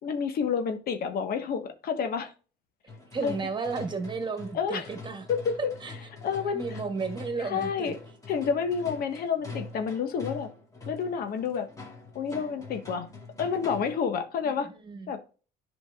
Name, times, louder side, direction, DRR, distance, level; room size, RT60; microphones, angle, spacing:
voice 1, 0.0-2.3 3.2-3.4 4.5-4.9 5.3-5.7 6.2-6.8 7.4-8.0 8.3-10.5 10.9-11.7 12.1-13.1 13.4-14.7 15.1-15.2, left 6 dB, 65° left, 1.3 m, -29 dB
sound 1, 2.9-14.1, left 3 dB, 20° left, 2.4 m, -44 dB
voice 2, 3.1-5.3 5.8-5.9 6.5-7.9 14.4-15.1, right 4 dB, 25° right, 1.7 m, -33 dB
10.5 x 5.2 x 2.4 m
cardioid pair, 110°, 17 cm